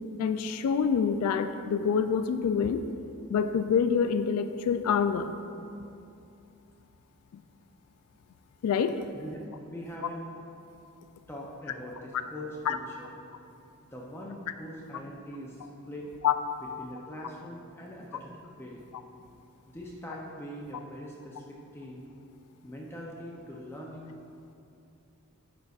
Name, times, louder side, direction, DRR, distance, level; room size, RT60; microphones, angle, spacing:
voice 1, 0.2-2.8 3.3-5.3 8.6-9.1 12.7-12.8 16.2-16.3, left 6 dB, 75° left, 12 dB, 0.3 m, -26 dB
voice 2, 9.1-10.3 11.3-13.2 13.9-15.6 15.9-16.1 16.8-18.3 18.6-18.8 19.7-22.0 22.6-24.1, equal, 10° left, -3 dB, 0.5 m, -42 dB
10.5 x 5.2 x 2.4 m, 2.6 s
head